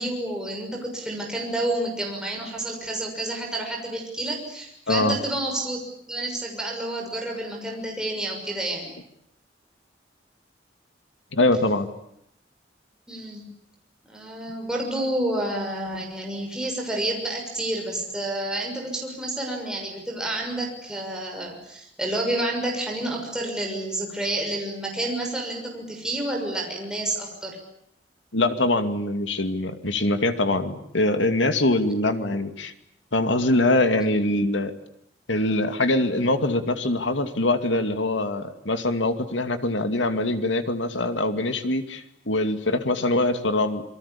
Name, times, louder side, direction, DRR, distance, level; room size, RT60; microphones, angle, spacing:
voice 1, 0.0-5.8 6.1-8.9 13.1-13.4 14.1-27.6 43.0-43.1, right 1 dB, 5° right, 0 dB, 6.3 m, -29 dB
voice 2, 4.9-5.2 11.3-11.9 28.3-32.7 33.1-34.7 35.3-43.8, left 2 dB, 85° left, 8 dB, 2.5 m, -23 dB
27.5 x 23.5 x 8.7 m, 0.76 s
head